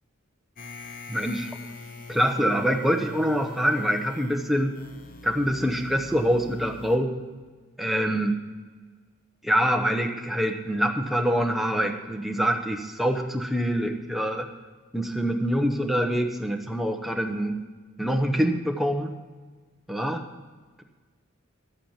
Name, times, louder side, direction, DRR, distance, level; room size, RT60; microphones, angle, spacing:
sound 1, 0.6-7.0, left 3 dB, 40° left, 1.1 m, -43 dB
voice 1, 1.1-1.5 2.1-4.7 5.2-7.1 7.8-8.4 9.4-14.5 14.9-17.5 18.0-19.1 19.9-20.2, equal, ahead, 3 dB, 0.9 m, -25 dB
12.0 x 8.4 x 7.3 m, 1.4 s
head